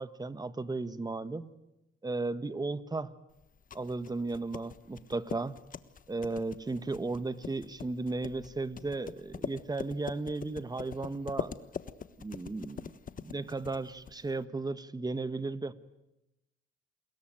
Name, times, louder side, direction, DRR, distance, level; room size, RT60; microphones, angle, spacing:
voice 1, 0.0-1.5 2.0-3.1 3.7-5.5 6.1-11.5 12.2-12.9 13.2-15.7, right 3 dB, 20° right, 14 dB, 1.5 m, -35 dB
sound 1, 3.4-14.4, left 6 dB, 45° left, 1.3 m, -43 dB
29.0 x 21.0 x 9.2 m, 0.94 s
cardioid pair, 90°, 20 cm